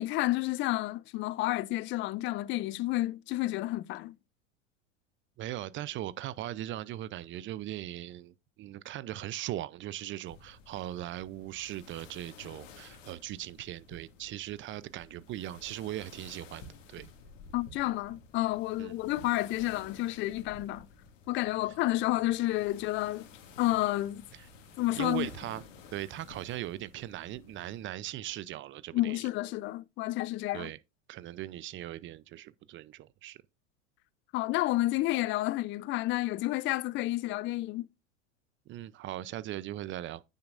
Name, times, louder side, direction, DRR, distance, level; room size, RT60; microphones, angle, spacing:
voice 1, 0.0-4.2 17.5-20.9 21.3-23.3 23.6-24.3 24.8-25.3 28.9-30.7 34.3-37.9, left 17 dB, 30° left, 0.5 m, -30 dB
voice 2, 5.4-17.1 18.8-19.0 24.4-24.5 25.0-25.6 25.9-29.2 30.5-30.8 31.1-33.4 38.7-40.2, right 14 dB, 30° right, 0.6 m, -39 dB
sound 1, 10.3-27.8, left 4 dB, 70° left, 2.2 m, -53 dB
9.6 x 9.0 x 2.5 m
hypercardioid pair, 95°, 39 cm